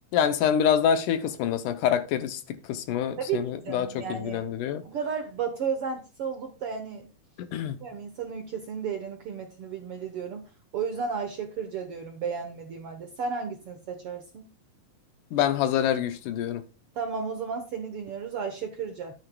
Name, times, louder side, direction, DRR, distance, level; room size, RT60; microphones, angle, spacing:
voice 1, 0.1-4.8 7.5-7.8 15.3-16.6, left 9 dB, 75° left, 2.2 m, -26 dB
voice 2, 3.2-4.4 4.8-7.1 7.8-10.4 10.7-14.5 16.9-19.1, right 6 dB, 65° right, 1.5 m, -33 dB
13.0 x 9.0 x 2.3 m
omnidirectional pair, 3.9 m